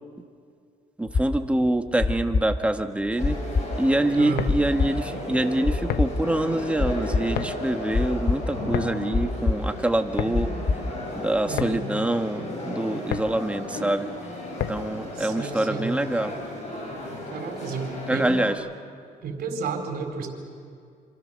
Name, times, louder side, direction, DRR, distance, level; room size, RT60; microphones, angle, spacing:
voice 1, 1.0-3.4 3.8-10.5 11.1-14.1 14.7-16.3 18.1-18.6, right 1 dB, 5° right, 6 dB, 1.4 m, -25 dB
sound 1, 1.1-9.7 10.0-11.6, left 4 dB, 25° left, 0.8 m, -26 dB
sound 2, 3.2-18.5, left 1 dB, 40° left, 7.0 m, -35 dB
voice 2, 4.1-4.5 11.5-11.8 15.1-15.9 17.3-18.3 19.2-20.3, right 5 dB, 65° right, 3 dB, 4.4 m, -32 dB
sound 3, 4.4-15.0, left 10 dB, 65° left, 1.0 m, -35 dB
26.5 x 26.5 x 6.5 m, 2.2 s
cardioid pair, 110°, 17 cm